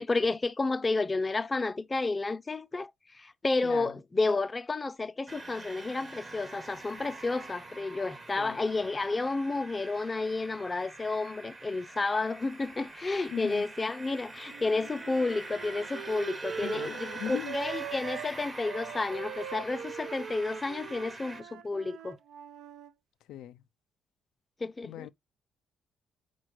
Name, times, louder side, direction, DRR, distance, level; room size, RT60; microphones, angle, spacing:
voice 1, 0.0-22.2 24.6-25.1, left 3 dB, 25° left, 0.4 m, -31 dB
sound 1, 5.3-21.4, right 2 dB, 30° right, 0.7 m, -45 dB
voice 2, 13.3-13.7 16.6-17.6 23.3-23.6 24.8-25.1, left 11 dB, 85° left, 0.3 m, -39 dB
Wind instrument woodwind instrument, 14.4-18.3 18.6-22.9, right 9 dB, 85° right, 0.3 m, -42 dB
4.5 x 2.2 x 4.5 m
cardioid pair, 90°, 0 cm